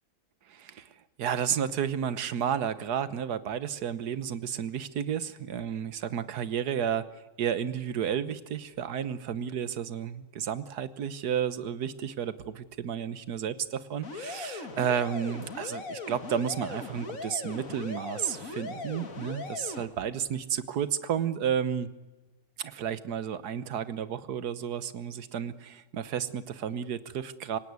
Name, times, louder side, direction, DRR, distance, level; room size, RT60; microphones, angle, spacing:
voice 1, 0.5-0.9 1.2-7.1 7.4-21.9 22.6-27.6, right 8 dB, 80° right, 14 dB, 1.6 m, -32 dB
sound 1, 14.0-19.9, left 4 dB, 60° left, 2.4 m, -39 dB
25.5 x 17.5 x 9.6 m, 1.1 s
omnidirectional pair, 1.7 m